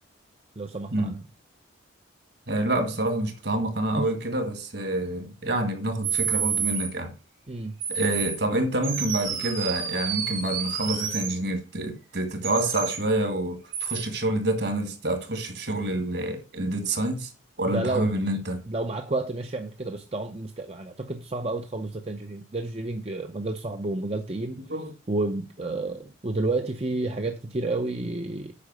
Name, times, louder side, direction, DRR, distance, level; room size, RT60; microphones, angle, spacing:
voice 1, 0.6-1.3 4.0-4.1 7.5-7.7 17.7-18.2 18.7-24.6 25.1-28.5, right 2 dB, 30° right, 0.6 m, -30 dB
voice 2, 2.5-7.1 7.9-17.3 17.6-18.6 24.7-24.9, right 1 dB, 55° right, 2.0 m, -27 dB
sound 1, 6.0-6.9 7.8-8.4 8.8-11.4 12.4-13.0 13.7-14.0, right 7 dB, 85° right, 3.4 m, -29 dB
8.5 x 5.5 x 6.3 m
head